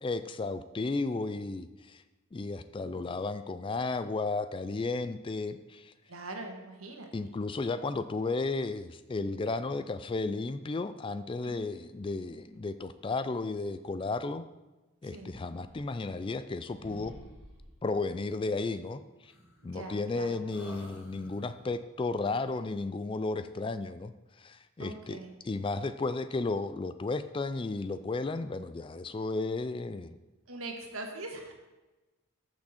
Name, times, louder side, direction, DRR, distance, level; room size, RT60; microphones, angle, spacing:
voice 1, 0.0-2.0 2.3-5.9 7.1-14.4 15.0-17.1 17.8-19.0 19.6-24.1 24.4-25.2 25.4-30.2, left 3 dB, 25° left, 12 dB, 0.3 m, -33 dB
voice 2, 6.1-7.1 11.4-11.7 15.1-15.3 19.6-20.4 24.8-25.3 30.5-31.5, right 2 dB, 70° right, 3 dB, 1.7 m, -42 dB
sound 1, 15.6-16.5 16.8-17.9 19.3-20.1 20.5-21.7, right 1 dB, 10° right, 2.5 m, -51 dB
13.5 x 6.1 x 4.3 m, 1.1 s
head